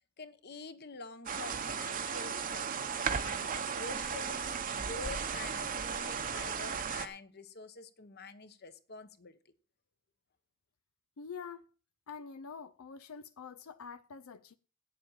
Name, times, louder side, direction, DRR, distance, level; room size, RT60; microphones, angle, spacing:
voice 1, 0.2-2.7 3.1-9.4, left 3 dB, 50° left, 1.1 m, -47 dB
sound 1, 1.3-7.1, right 6 dB, 40° right, 0.9 m, -35 dB
voice 2, 11.2-11.7 12.1-14.5, left 6 dB, 80° left, 0.5 m, -46 dB
9.1 x 7.4 x 7.2 m
head